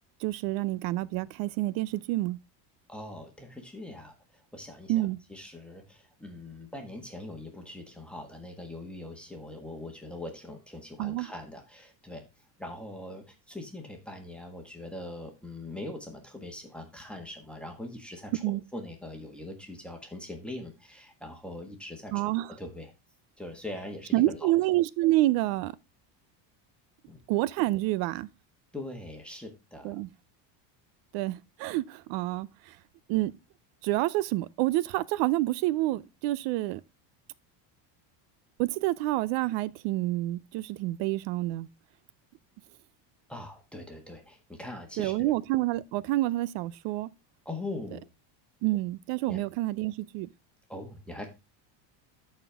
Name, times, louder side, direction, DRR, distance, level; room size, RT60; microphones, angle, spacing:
voice 1, 0.2-2.4 4.9-5.2 11.0-11.3 18.4-18.6 22.1-22.5 24.1-25.8 27.3-28.3 29.8-30.1 31.1-32.5 33.1-33.3 33.8-36.8 38.6-41.7 45.0-47.1 48.6-50.3, right 17 dB, 60° right, 0.6 m, -28 dB
voice 2, 2.9-12.2 12.6-22.1 22.6-22.9 23.4-24.5 27.1-27.2 28.7-30.0 43.3-45.3 47.4-48.1 49.3-49.4 50.7-51.3, left 1 dB, ahead, 1.5 m, -42 dB
12.5 x 4.5 x 3.5 m
cardioid pair, 135°, 50 cm